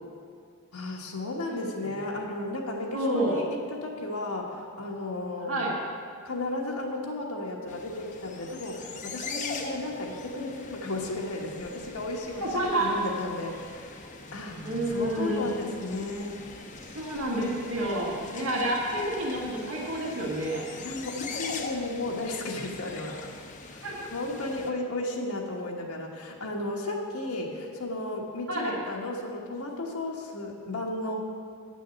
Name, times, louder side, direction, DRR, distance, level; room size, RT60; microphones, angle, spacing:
voice 1, 0.7-5.6 6.2-14.6 14.9-16.4 20.8-23.3 23.7-31.2, left 2 dB, 80° left, -1 dB, 1.3 m, -34 dB
voice 2, 1.5-2.0 2.9-3.4 5.5-5.7 12.4-12.9 14.6-15.4 16.9-20.6 23.8-24.1 28.5-28.8, right 1 dB, 65° right, -4 dB, 1.8 m, -29 dB
sound 1, 7.7-24.7, left 4 dB, 35° left, 0.7 m, -42 dB
8.7 x 6.3 x 8.3 m, 2.2 s
head